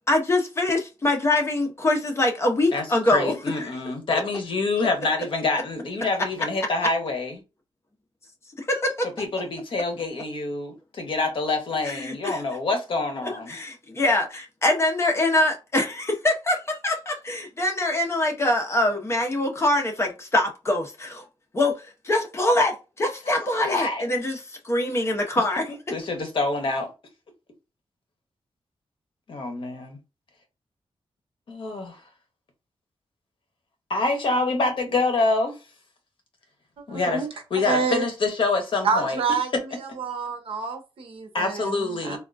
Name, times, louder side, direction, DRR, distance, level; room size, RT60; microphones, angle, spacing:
voice 1, 0.1-3.7 8.6-9.1 11.8-12.4 13.2-21.3 21.5-26.0, left 1 dB, 25° left, 0.7 m, -24 dB
voice 2, 2.7-7.4 9.2-13.6 23.4-24.0 25.9-26.9 29.3-30.0 31.5-31.9 33.9-35.6 36.9-39.2 41.3-42.2, left 3 dB, 60° left, 0.9 m, -26 dB
voice 3, 36.9-37.3 37.6-38.0 38.8-39.5 40.0-42.2, right 5 dB, 70° right, 0.8 m, -27 dB
3.5 x 2.3 x 2.5 m
wide cardioid pair, 165°, 10 cm